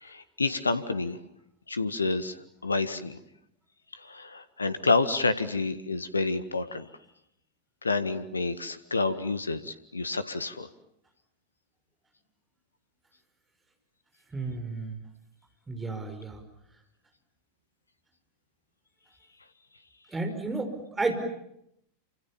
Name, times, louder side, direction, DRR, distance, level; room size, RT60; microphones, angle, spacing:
voice 1, 0.0-1.2 1.7-2.3 2.6-3.2 4.0-6.9 7.8-10.7, left 3 dB, 80° left, 12 dB, 1.6 m, -29 dB
voice 2, 14.3-15.0 15.7-16.4 20.1-21.1, right 3 dB, 10° right, 6 dB, 5.4 m, -32 dB
29.0 x 27.0 x 7.3 m, 0.76 s
figure-of-eight pair, 90°, 0 cm